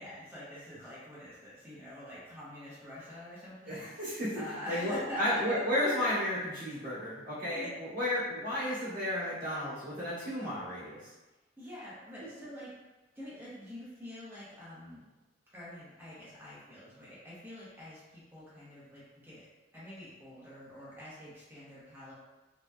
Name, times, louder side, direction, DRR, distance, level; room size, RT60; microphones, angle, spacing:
voice 1, 0.0-3.9 4.3-5.6 7.4-7.7 11.6-12.7 13.1-15.0 15.5-19.5 19.7-22.1, left 1 dB, 10° right, -9 dB, 0.6 m, -45 dB
voice 2, 3.7-4.4 4.7-11.1, left 1 dB, 55° right, -12 dB, 1.0 m, -33 dB
2.8 x 2.1 x 2.2 m, 1.1 s
head